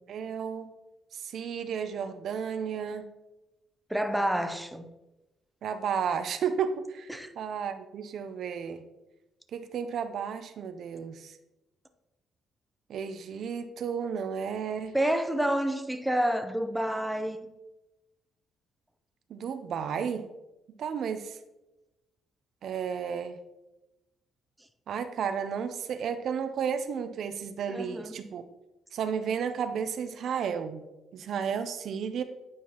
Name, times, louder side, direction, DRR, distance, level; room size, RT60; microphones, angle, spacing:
voice 1, 0.1-0.7 1.1-3.0 5.6-8.8 9.5-11.4 12.9-14.9 19.3-20.3 20.8-21.4 22.6-23.4 24.9-28.4 28.9-30.8 31.1-32.2, right 7 dB, 65° right, 0.5 m, -33 dB
voice 2, 3.9-4.8 7.1-7.3 14.9-17.4 27.7-28.2, right 1 dB, 5° right, 0.6 m, -29 dB
9.1 x 4.6 x 2.9 m
cardioid pair, 90°, 0 cm